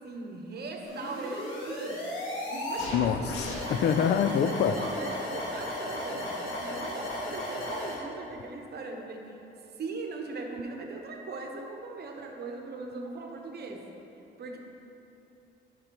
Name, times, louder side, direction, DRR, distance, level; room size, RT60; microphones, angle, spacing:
voice 1, 0.0-2.1 2.5-3.0 4.5-9.4 9.8-13.9 14.4-14.6, right 3 dB, 55° right, 2 dB, 1.0 m, -39 dB
sound 1, 0.8-8.0, left 1 dB, 75° left, 1.6 m, -35 dB
voice 2, 2.9-4.8, left 8 dB, 60° left, 11 dB, 0.4 m, -26 dB
11.5 x 5.3 x 3.0 m, 3.0 s
cardioid pair, 90°, 20 cm